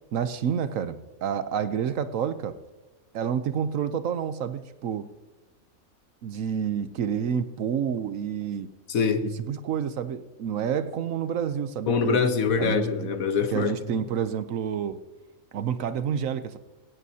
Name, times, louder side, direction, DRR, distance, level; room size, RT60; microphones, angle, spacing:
voice 1, 0.1-2.5 3.1-5.0 6.2-8.7 9.5-12.2 12.6-13.1 13.5-15.0 15.5-16.6, right 8 dB, 75° right, 11 dB, 1.1 m, -29 dB
voice 2, 8.9-9.3 11.9-14.1, left 5 dB, 90° left, 8 dB, 1.5 m, -24 dB
19.0 x 17.0 x 2.8 m, 1.2 s
omnidirectional pair, 1.4 m